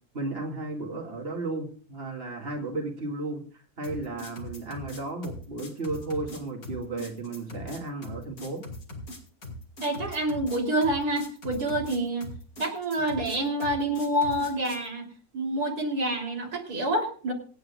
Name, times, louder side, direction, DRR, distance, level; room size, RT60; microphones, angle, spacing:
voice 1, 0.1-3.4 3.8-8.6, right 2 dB, 40° right, 1 dB, 2.4 m, -34 dB
sound 1, 3.8-14.9, left 1 dB, 65° left, 2.9 m, -41 dB
voice 2, 9.8-12.3 12.6-15.0 15.3-17.3, right 1 dB, 90° right, 0 dB, 3.9 m, -27 dB
26.0 x 9.2 x 2.4 m, 0.41 s
omnidirectional pair, 1.6 m